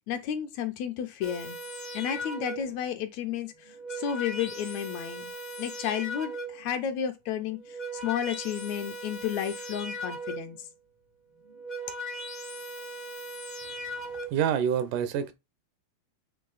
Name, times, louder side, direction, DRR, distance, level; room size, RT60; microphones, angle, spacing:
voice 1, 0.1-1.6 1.9-5.3 5.6-10.7, left 9 dB, 75° left, 1.8 m, -32 dB
sound 1, 1.2-2.8 3.6-6.7 7.5-10.6 11.4-14.3, right 1 dB, 50° left, 0.5 m, -38 dB
voice 2, 14.3-15.3, right 8 dB, 90° right, 2.4 m, -26 dB
8.4 x 3.1 x 3.9 m
omnidirectional pair, 3.5 m